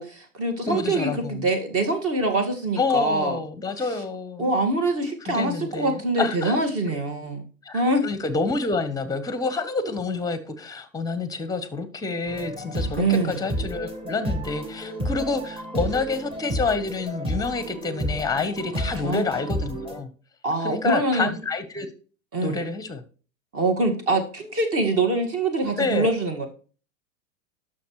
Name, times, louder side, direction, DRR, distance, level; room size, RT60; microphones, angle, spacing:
voice 1, 0.0-3.4 3.9-4.0 4.4-7.4 7.7-8.0 13.0-13.4 19.0-19.2 20.4-21.3 22.3-22.6 23.5-26.5, right 2 dB, 35° right, 1.9 m, -24 dB
voice 2, 0.7-1.5 2.8-4.5 5.3-6.6 7.6-20.1 20.6-21.9 22.4-23.0 25.8-26.1, left 4 dB, 10° left, 0.9 m, -28 dB
sound 1, 12.3-20.0, equal, 15° right, 1.4 m, -31 dB
11.5 x 6.4 x 3.1 m
hypercardioid pair, 110°, 42 cm